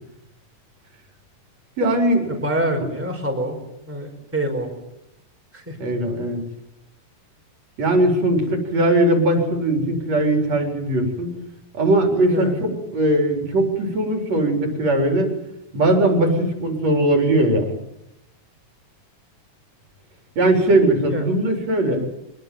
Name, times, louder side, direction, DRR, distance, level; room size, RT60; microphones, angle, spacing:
voice 1, 1.8-2.3 5.8-6.4 7.8-11.3 11.7-15.3 15.7-17.7 20.4-22.0, right 1 dB, 55° right, 4 dB, 5.5 m, -19 dB
voice 2, 2.3-3.6 3.9-4.7 5.5-5.8 12.3-12.6 21.1-21.2, right 1 dB, 5° right, 2 dB, 5.1 m, -26 dB
26.5 x 20.5 x 9.3 m, 0.86 s
omnidirectional pair, 3.5 m